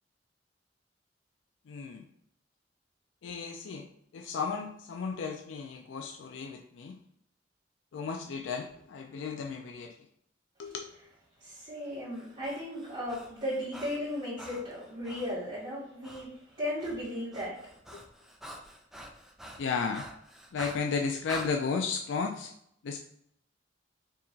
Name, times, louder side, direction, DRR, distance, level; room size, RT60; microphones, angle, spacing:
voice 1, 1.7-2.0 3.2-3.9 4.1-7.0 7.9-9.9 10.6-10.8 17.9-18.0 19.6-20.1 20.5-22.5 22.8-23.0, left 5 dB, 80° left, 3 dB, 0.4 m, -34 dB
voice 2, 11.4-16.3 16.6-17.6, left 1 dB, 40° right, -12 dB, 1.6 m, -36 dB
Breathing, 12.2-15.4 16.0-16.3 16.6-21.5, equal, ahead, 0.4 m, -46 dB
4.6 x 2.9 x 2.7 m, 0.70 s
head